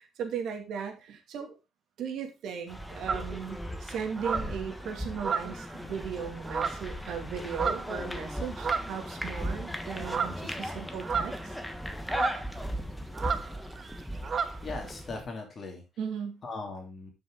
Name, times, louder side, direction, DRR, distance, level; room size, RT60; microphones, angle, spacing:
voice 1, 0.0-1.6 2.0-11.5 16.0-16.4, right 7 dB, 75° right, 4 dB, 2.4 m, -37 dB
sound 1, 2.7-15.2, equal, 5° left, 1.2 m, -37 dB
sound 2, 3.1-3.3 4.2-4.6 5.2-5.8 6.5-6.9 7.5-7.9 8.6-9.0 10.0-10.4 11.0-11.6 12.1-12.4 13.1-13.5 13.8-14.0 14.2-14.6, right 6 dB, 40° right, 0.9 m, -31 dB
voice 2, 14.6-15.8 16.4-17.1, left 3 dB, 35° left, 2 dB, 2.8 m, -39 dB
12.0 x 6.1 x 3.8 m, 0.26 s
cardioid pair, 135°, 0 cm